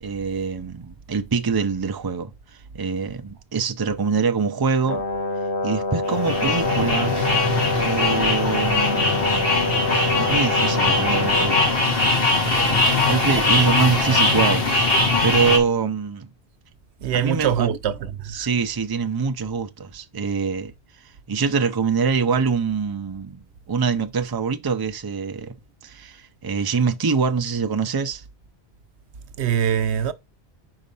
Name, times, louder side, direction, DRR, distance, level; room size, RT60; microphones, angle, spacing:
voice 1, 0.0-2.3 2.7-5.0 5.6-7.2 7.8-9.6 10.2-11.8 12.5-16.3 17.1-17.7 18.3-20.7 21.3-23.4 23.7-25.5 25.8-28.2, right 5 dB, 25° right, 0.5 m, -24 dB
Brass instrument, 4.8-11.8, left 2 dB, 80° left, 1.5 m, -26 dB
sound 1, 6.0-15.6, left 2 dB, 60° left, 2.3 m, -21 dB
voice 2, 17.0-17.9 18.2-18.5 29.4-30.1, right 9 dB, 80° right, 0.9 m, -22 dB
5.1 x 5.0 x 5.5 m
omnidirectional pair, 1.1 m